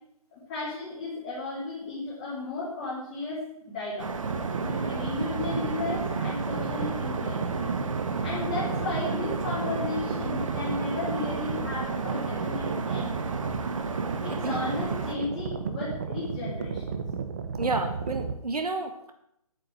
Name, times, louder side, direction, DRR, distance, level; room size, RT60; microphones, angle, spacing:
voice 1, 0.3-4.1 4.6-7.6 8.2-13.1 14.2-17.0, left 3 dB, 15° left, -8 dB, 2.6 m, -34 dB
sound 1, 4.0-15.1, right 3 dB, 55° right, 1.4 m, -33 dB
sound 2, 4.2-18.3, right 6 dB, 25° right, 0.6 m, -34 dB
voice 2, 17.6-19.1, right 3 dB, 85° right, 5 dB, 1.4 m, -30 dB
9.3 x 7.5 x 7.7 m, 0.76 s
hypercardioid pair, 165°, 19 cm